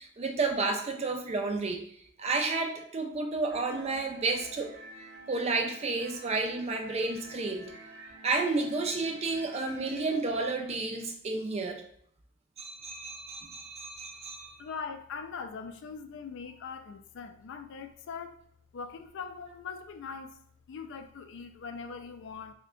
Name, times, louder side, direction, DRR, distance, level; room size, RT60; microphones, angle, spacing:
voice 1, 0.0-1.8 2.2-4.7 5.3-7.7 8.2-11.8 12.6-14.5, right 3 dB, 30° right, 4 dB, 0.4 m, -31 dB
sound 1, 3.5-10.2, right 2 dB, 60° right, 0.7 m, -49 dB
voice 2, 14.6-18.3 18.7-20.3 20.7-22.5, left 5 dB, 55° left, 7 dB, 0.3 m, -41 dB
3.4 x 2.1 x 3.6 m, 0.66 s
head